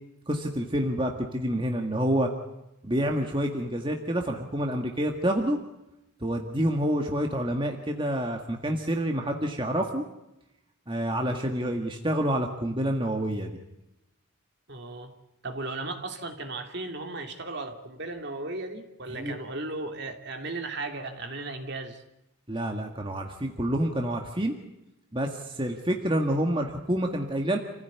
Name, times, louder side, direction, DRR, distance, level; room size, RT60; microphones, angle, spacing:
voice 1, 0.3-2.3 2.8-5.6 6.2-10.0 10.9-13.5 19.2-19.4 22.5-24.6 25.1-27.6, right 1 dB, 25° right, 3 dB, 1.8 m, -28 dB
voice 2, 14.7-15.1 15.4-22.0, right 2 dB, 50° right, 5 dB, 2.8 m, -36 dB
28.5 x 15.5 x 9.5 m, 0.90 s
head